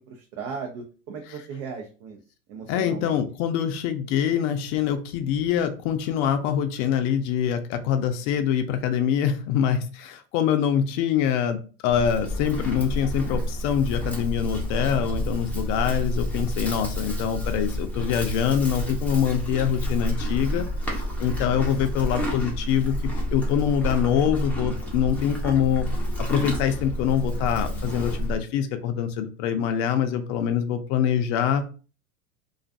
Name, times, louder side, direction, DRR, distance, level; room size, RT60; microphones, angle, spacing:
voice 1, 0.1-2.2 2.5-3.2, right 5 dB, 50° right, 1 dB, 0.6 m, -37 dB
voice 2, 2.7-20.7 21.2-25.9 26.2-31.6, left 8 dB, 50° left, 8 dB, 0.5 m, -24 dB
Livestock farm animals working animals, 11.9-28.4, equal, 5° left, 0.6 m, -29 dB
2.4 x 2.3 x 2.5 m, 0.36 s
hypercardioid pair, 105°, 44 cm